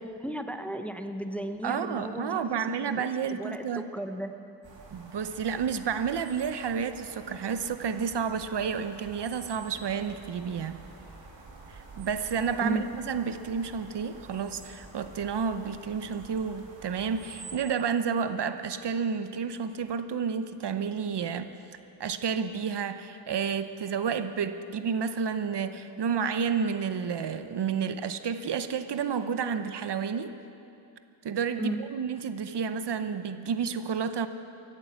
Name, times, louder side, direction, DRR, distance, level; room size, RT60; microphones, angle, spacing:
voice 1, 0.0-4.3 12.6-12.8 31.6-31.8, right 1 dB, 5° left, 7 dB, 0.7 m, -35 dB
voice 2, 1.6-3.8 4.9-10.8 11.7-21.6 22.0-30.4 31.2-34.3, right 6 dB, 65° right, 11 dB, 0.8 m, -30 dB
sound 1, 4.6-17.5, right 3 dB, 85° right, 2.7 m, -49 dB
14.5 x 11.5 x 8.2 m, 2.7 s
wide cardioid pair, 105°, 44 cm